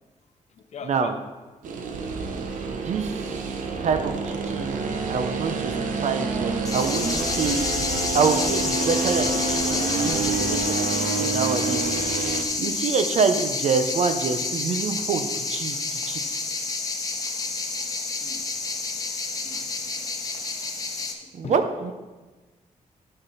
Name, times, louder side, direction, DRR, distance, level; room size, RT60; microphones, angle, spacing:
voice 1, 0.5-1.2 11.1-11.2 17.5-17.8 18.2-18.4 19.4-19.7 19.9-20.0 21.2-21.6 21.8-21.9, left 6 dB, 60° left, 7 dB, 0.8 m, -41 dB
sound 1, 1.6-12.4, right 4 dB, 90° right, 0.9 m, -28 dB
voice 2, 2.7-3.5 3.8-4.8 5.1-7.6 8.1-12.1 12.6-16.4 21.3-21.9, right 5 dB, 60° right, 8 dB, 0.8 m, -26 dB
sound 2, 6.7-21.1, left 3 dB, 25° left, 0.9 m, -29 dB
11.5 x 6.0 x 4.2 m, 1.2 s
wide cardioid pair, 145°, 13 cm